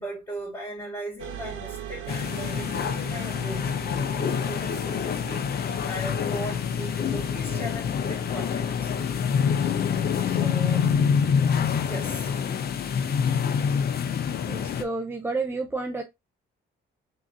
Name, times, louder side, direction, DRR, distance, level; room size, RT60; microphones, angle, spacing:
voice 1, 0.0-8.9 9.5-9.9 10.2-10.9 11.8-14.7, equal, 15° left, 2.6 m, -39 dB
sound 1, 1.2-12.5, right 9 dB, 75° right, 1.0 m, -42 dB
sound 2, 2.1-14.8, left 7 dB, 50° left, 0.7 m, -26 dB
voice 2, 14.5-16.0, right 3 dB, 10° right, 0.6 m, -30 dB
3.8 x 2.9 x 3.6 m
cardioid pair, 90°, 20 cm